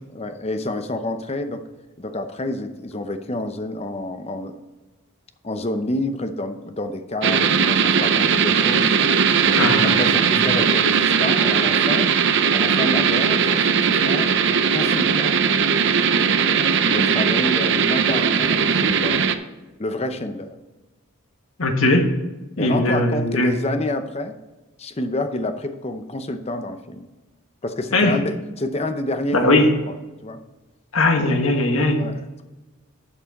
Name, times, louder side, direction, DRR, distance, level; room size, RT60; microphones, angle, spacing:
voice 1, 0.1-1.6 2.0-4.6 5.4-9.0 9.4-12.1 12.5-15.4 16.4-19.2 19.8-20.6 22.6-24.4 24.8-27.1 27.6-29.5 29.9-30.0 30.2-30.4 31.2-31.3 31.9-32.4, left 1 dB, 30° left, 8 dB, 0.7 m, -28 dB
sound 1, 7.2-19.4, right 6 dB, 55° right, 0.6 m, -19 dB
voice 2, 9.6-9.9 21.6-22.1 22.6-23.5 27.9-28.2 29.3-29.7 30.9-32.0, left 2 dB, 70° left, 4 dB, 1.4 m, -19 dB
11.0 x 6.0 x 4.1 m, 1.2 s
head